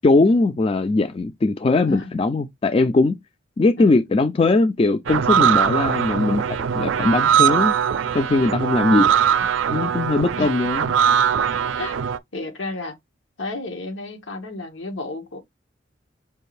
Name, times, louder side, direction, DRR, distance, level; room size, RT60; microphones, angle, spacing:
voice 1, 0.0-3.2 3.6-7.7 8.1-9.1 9.7-10.8, left 3 dB, 30° left, 0.3 m, -20 dB
sound 1, 5.1-12.2, right 8 dB, 85° right, 0.4 m, -21 dB
voice 2, 12.3-13.0 13.4-15.4, left 2 dB, 90° left, 1.3 m, -31 dB
5.5 x 2.5 x 3.2 m
head